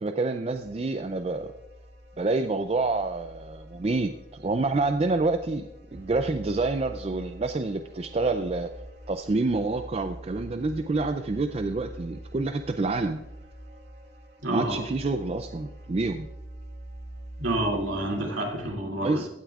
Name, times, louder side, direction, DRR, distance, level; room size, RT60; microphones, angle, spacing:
voice 1, 0.0-1.5 2.2-8.7 9.1-13.2 14.5-16.3 19.0-19.3, right 3 dB, 30° right, 7 dB, 0.4 m, -28 dB
sound 1, 0.5-18.7, right 1 dB, 55° right, 2.1 m, -45 dB
voice 2, 14.4-14.8 17.4-19.2, right 1 dB, 90° right, 0 dB, 2.6 m, -28 dB
15.5 x 9.2 x 2.4 m, 0.97 s
head